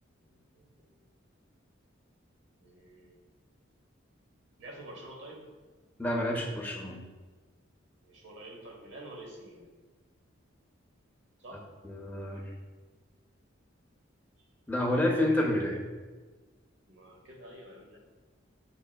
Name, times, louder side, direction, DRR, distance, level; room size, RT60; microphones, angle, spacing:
voice 1, 0.2-1.0 2.6-3.2 4.6-5.4 8.0-9.7 11.4-11.6 14.4-14.5 16.9-18.0, right 1 dB, 70° right, 0 dB, 0.9 m, -48 dB
voice 2, 6.0-7.0 11.8-12.5 14.7-15.8, left 1 dB, 10° left, -1 dB, 0.5 m, -29 dB
6.9 x 3.1 x 2.2 m, 1.4 s
head